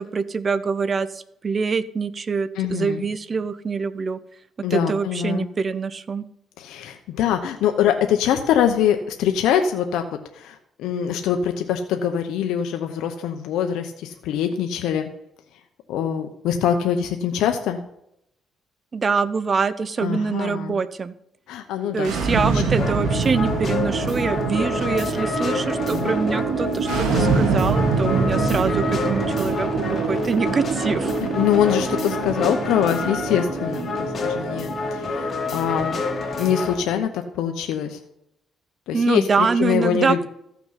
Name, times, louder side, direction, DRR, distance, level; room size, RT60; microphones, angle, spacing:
voice 1, 0.0-4.2 4.7-6.2 18.9-21.1 21.9-29.7 30.1-31.1 38.9-40.3, right 5 dB, 40° right, 16 dB, 0.7 m, -24 dB
voice 2, 2.6-3.0 4.6-5.5 6.6-10.1 10.3-15.1 15.9-17.8 20.0-20.8 21.5-22.6 25.9-26.1 31.4-38.0 38.9-40.3, left 9 dB, 90° left, 6 dB, 0.8 m, -24 dB
sound 1, 22.0-36.9, right 4 dB, 90° right, 2.2 m, -25 dB
sound 2, 22.8-36.8, left 3 dB, 45° left, 2.5 m, -28 dB
14.5 x 6.0 x 5.7 m, 0.78 s
cardioid pair, 90°, 0 cm